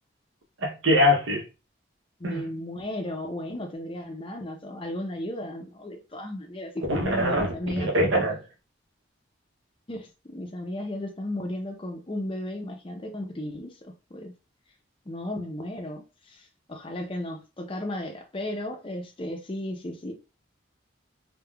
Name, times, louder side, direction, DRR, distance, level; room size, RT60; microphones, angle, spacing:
voice 1, 0.6-1.4 2.2-2.4 6.9-8.4, left 1 dB, 75° right, 0.8 m, -23 dB
voice 2, 2.2-7.9 9.9-14.3 15.1-20.1, left 1 dB, 25° left, 0.5 m, -35 dB
3.4 x 2.2 x 2.3 m
head